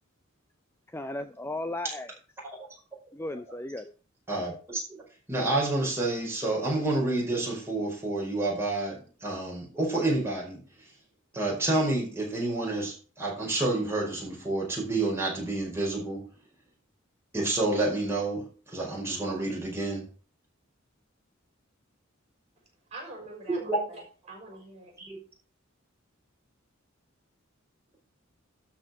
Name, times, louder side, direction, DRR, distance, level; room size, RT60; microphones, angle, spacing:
voice 1, 0.9-2.1 3.1-3.9, left 1 dB, 10° left, 0.5 m, -35 dB
voice 2, 4.3-5.0 5.3-10.9 11.3-16.3 17.3-20.1 23.6-23.9 25.0-25.2, right 2 dB, 10° right, 5.1 m, -29 dB
voice 3, 22.9-24.9, right 2 dB, 35° right, 5.9 m, -44 dB
12.5 x 4.9 x 7.1 m
head